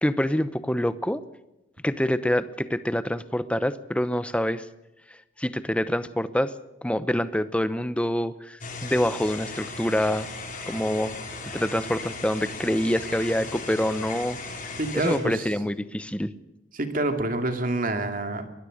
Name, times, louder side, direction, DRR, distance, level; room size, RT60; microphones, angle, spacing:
voice 1, 0.0-1.2 1.8-4.7 5.4-6.5 6.8-10.3 10.7-11.2 11.5-14.4 14.9-16.3, equal, 5° left, 13 dB, 0.8 m, -26 dB
sound 1, 8.6-15.2, left 3 dB, 45° left, 5.9 m, -37 dB
voice 2, 14.8-15.5 16.7-18.5, right 2 dB, 45° right, 6 dB, 2.5 m, -27 dB
23.5 x 20.0 x 6.6 m, 0.95 s
head